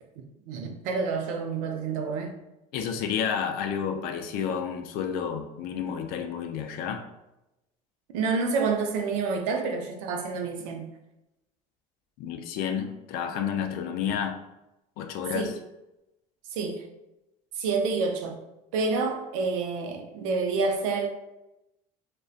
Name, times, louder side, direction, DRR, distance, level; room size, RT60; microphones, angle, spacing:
voice 1, 0.5-2.4 8.1-10.9 15.3-15.5 16.5-16.8 17.6-18.4 18.7-21.1, right 4 dB, 90° right, 4 dB, 0.4 m, -28 dB
voice 2, 2.7-7.0 12.2-14.4 15.0-15.5, left 7 dB, 70° left, 6 dB, 0.4 m, -30 dB
2.5 x 2.1 x 2.4 m, 0.92 s
supercardioid pair, 90°, 16 cm